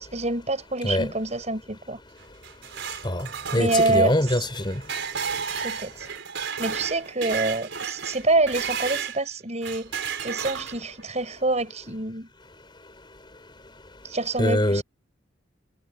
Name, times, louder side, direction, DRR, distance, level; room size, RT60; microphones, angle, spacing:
voice 1, 0.0-2.0 3.6-4.1 5.6-6.1 6.6-9.9 10.2-12.3 14.0-14.8, right 2 dB, 35° right, 5.8 m, -26 dB
sound 1, 2.2-9.2 9.6-11.0, right 6 dB, 65° right, 5.1 m, -33 dB
voice 2, 2.3-5.1 5.4-5.5 12.8-14.1 14.4-14.8, left 1 dB, 25° left, 3.6 m, -27 dB
head